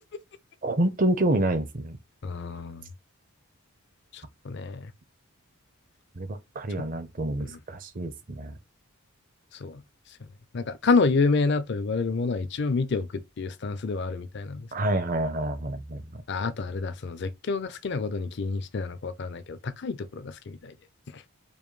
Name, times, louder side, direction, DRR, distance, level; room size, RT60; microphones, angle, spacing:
voice 1, 0.6-2.0 6.2-8.5 14.7-16.1, right 1 dB, 40° right, 0.6 m, -27 dB
voice 2, 2.2-2.9 4.1-4.9 6.8-6.9 7.4-7.6 9.5-9.8 10.1-10.3 10.5-14.9 16.3-20.8 21.1-21.2, left 4 dB, 50° left, 0.4 m, -29 dB
5.2 x 2.2 x 3.1 m
head